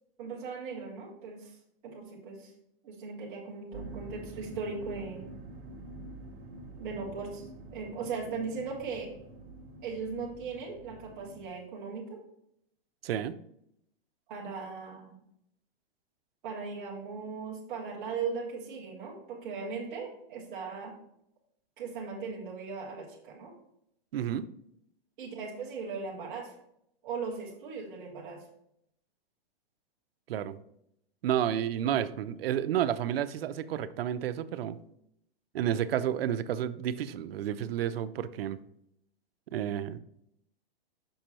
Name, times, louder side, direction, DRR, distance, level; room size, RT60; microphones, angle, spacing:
voice 1, 0.2-1.6 1.8-2.5 2.8-5.2 6.7-9.2 9.8-12.2 14.3-15.2 16.4-20.9 21.8-23.5 25.2-26.6 27.0-28.4, right 5 dB, 5° right, -5 dB, 0.3 m, -38 dB
sound 1, 3.7-11.5, right 2 dB, 35° right, 0.8 m, -47 dB
voice 2, 13.0-13.3 24.1-24.5 30.3-30.6 31.2-34.8 35.5-38.6 39.5-40.0, right 10 dB, 70° right, 13 dB, 0.5 m, -31 dB
6.4 x 5.4 x 2.9 m, 0.76 s
supercardioid pair, 170°, 31 cm